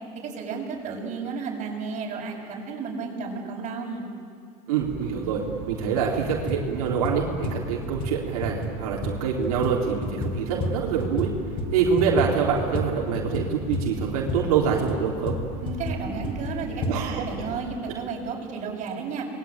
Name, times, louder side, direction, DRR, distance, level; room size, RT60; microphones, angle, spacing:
voice 1, 0.2-4.1 15.6-19.3, right 4 dB, 40° right, -1 dB, 7.3 m, -33 dB
voice 2, 4.7-5.4 5.7-11.3 11.7-15.4 16.9-17.2, right 6 dB, 90° right, -3 dB, 3.9 m, -25 dB
sound 1, 4.8-17.8, right 6 dB, 60° right, 3.0 m, -41 dB
sound 2, 5.7-6.0 6.3-11.3 11.6-16.9, left 2 dB, 30° left, 2.3 m, -31 dB
28.0 x 21.5 x 9.0 m, 2.3 s
supercardioid pair, 130°, 18 cm